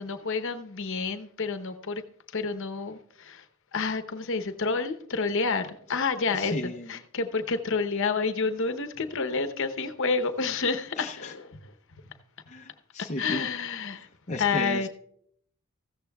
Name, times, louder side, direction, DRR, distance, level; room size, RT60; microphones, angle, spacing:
voice 1, 0.0-2.0 2.3-3.5 3.7-11.7 12.0-12.1 13.0-14.1 14.4-14.9, left 4 dB, 60° left, 0.9 m, -29 dB
voice 2, 6.3-6.9 11.0-11.3 12.5-13.5 14.3-14.9, left 1 dB, 30° left, 0.6 m, -34 dB
15.0 x 13.5 x 2.3 m
head